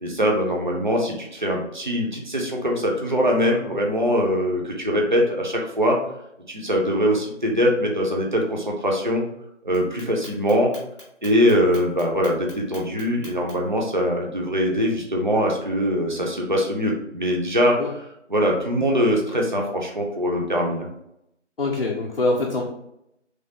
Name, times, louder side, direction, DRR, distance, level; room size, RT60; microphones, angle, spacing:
voice 1, 0.0-6.0 6.5-9.2 9.6-10.7 11.2-17.8 18.3-20.9, equal, 40° right, 0 dB, 0.4 m, -22 dB
Clock, 9.7-13.8, equal, 25° left, 0.8 m, -44 dB
voice 2, 21.6-22.6, left 2 dB, 50° left, -2 dB, 0.4 m, -23 dB
3.1 x 2.2 x 2.8 m, 0.79 s
figure-of-eight pair, 165°, 37 cm